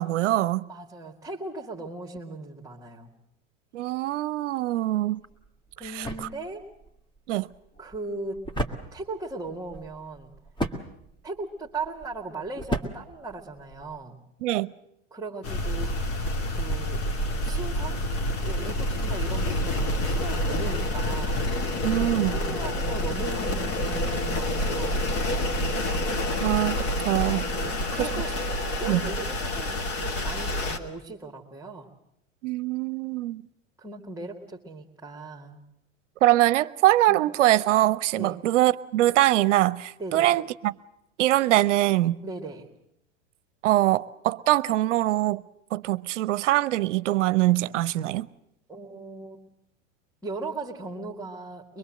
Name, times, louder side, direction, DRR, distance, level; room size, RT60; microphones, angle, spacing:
voice 1, 0.0-0.6 3.7-5.2 5.9-6.3 7.3-7.5 14.4-14.7 21.8-22.3 26.4-27.4 28.9-29.0 32.4-33.4 36.2-40.7 41.2-42.2 43.6-45.4 45.7-48.3, right 15 dB, 70° right, 0.8 m, -23 dB
voice 2, 0.7-3.1 5.8-6.7 7.8-8.5 8.9-10.3 11.2-14.2 15.1-16.1 16.4-17.0 17.4-18.0 18.4-21.4 22.0-25.0 25.4-25.8 27.5-28.3 28.8-31.9 33.8-35.6 37.1-37.2 38.1-38.4 40.0-40.4 42.2-42.7 48.7-49.4 50.2-51.8, right 3 dB, 5° right, 2.5 m, -38 dB
sound 1, 5.2-14.0, equal, 10° left, 2.3 m, -36 dB
sound 2, 15.4-30.8, left 1 dB, 35° left, 2.6 m, -28 dB
23.5 x 22.5 x 7.8 m
hypercardioid pair, 95°, 38 cm